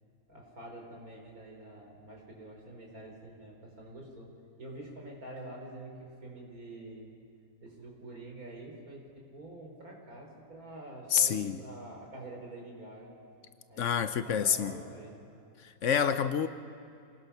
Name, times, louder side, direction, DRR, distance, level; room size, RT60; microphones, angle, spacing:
voice 1, 0.3-4.3 4.6-7.1 7.6-13.1 13.7-13.8 14.2-15.2, right 1 dB, 85° right, 0 dB, 4.2 m, -47 dB
voice 2, 11.1-11.6 13.8-14.8 15.6-16.5, left 8 dB, 60° left, 11 dB, 1.0 m, -28 dB
27.0 x 19.0 x 5.7 m, 2.6 s
omnidirectional pair, 1.5 m